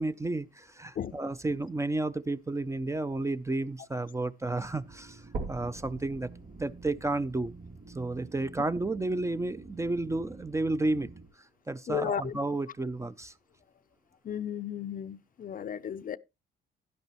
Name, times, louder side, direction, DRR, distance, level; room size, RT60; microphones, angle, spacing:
voice 1, 0.0-7.6 7.9-11.1 11.7-13.3, right 2 dB, 15° right, 0.5 m, -32 dB
sound 1, 4.4-11.3, right 3 dB, 40° right, 2.7 m, -49 dB
sound 2, 5.3-9.3 9.9-10.0 10.6-10.7 11.0-11.1 11.9-12.0, right 3 dB, 80° right, 3.2 m, -43 dB
voice 2, 11.9-12.3 14.3-16.2, left 8 dB, 45° left, 0.5 m, -34 dB
11.0 x 11.0 x 3.0 m
cardioid pair, 90°, 20 cm